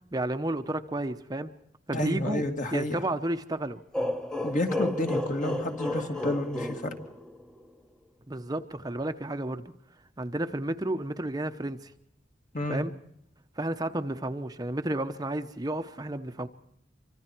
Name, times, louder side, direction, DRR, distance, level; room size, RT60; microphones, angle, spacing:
voice 1, 0.1-1.5 1.9-2.4 2.7-3.8 8.3-9.7 10.2-11.9 12.7-12.9 13.6-16.5, right 1 dB, 20° right, 7 dB, 0.9 m, -31 dB
voice 2, 1.9-2.9 4.4-6.9 12.5-12.9, left 1 dB, 45° left, 4 dB, 2.5 m, -30 dB
sound 1, 3.9-7.6, left 2 dB, 5° left, 1.0 m, -32 dB
26.0 x 25.0 x 4.6 m, 0.74 s
head